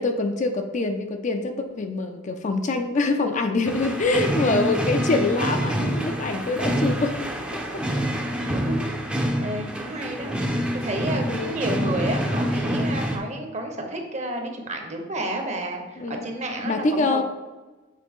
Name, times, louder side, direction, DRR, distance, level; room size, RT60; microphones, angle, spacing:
voice 1, 0.0-7.3 7.7-7.8 11.3-11.6 16.0-16.2 16.6-17.2, left 3 dB, 40° left, 6 dB, 0.5 m, -25 dB
sound 1, 3.7-13.2, equal, 5° right, 0.6 m, -26 dB
voice 2, 3.7-4.3 8.4-8.9 9.2-10.3 10.7-17.2, right 1 dB, 35° right, 3 dB, 1.0 m, -31 dB
7.4 x 3.8 x 3.6 m, 1.2 s
head